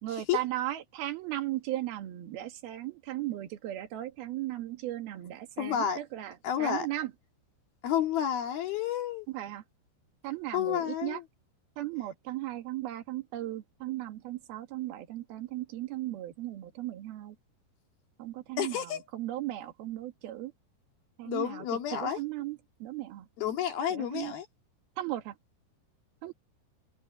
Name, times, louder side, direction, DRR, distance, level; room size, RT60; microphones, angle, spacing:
voice 1, 0.0-7.1 9.3-9.6 10.2-11.2 11.8-17.4 18.2-20.5 21.2-21.6 21.9-23.3 23.9-24.3 25.0-25.3 26.2-26.3, right 15 dB, 60° right, 3.3 m, -36 dB
voice 2, 5.6-6.0 6.4-6.9 7.8-9.3 10.5-11.2 18.6-19.0 21.3-22.2 23.4-24.5, left 10 dB, 55° left, 3.7 m, -30 dB
omnidirectional pair, 5.5 m